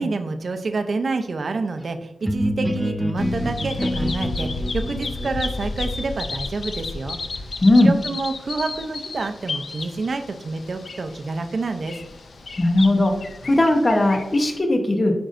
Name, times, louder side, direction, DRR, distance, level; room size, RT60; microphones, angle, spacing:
voice 1, 0.0-7.2 7.8-12.0, right 3 dB, 55° right, 7 dB, 0.6 m, -28 dB
sound 1, 2.2-7.9, equal, ahead, 0.5 m, -28 dB
Bird vocalization bird call bird song, 3.2-14.6, left 3 dB, 65° left, 0.5 m, -33 dB
voice 2, 7.6-7.9 12.6-13.1 13.4-15.1, left 1 dB, 30° left, 3 dB, 0.9 m, -17 dB
9.1 x 5.2 x 2.6 m, 0.98 s
wide cardioid pair, 120°, 0 cm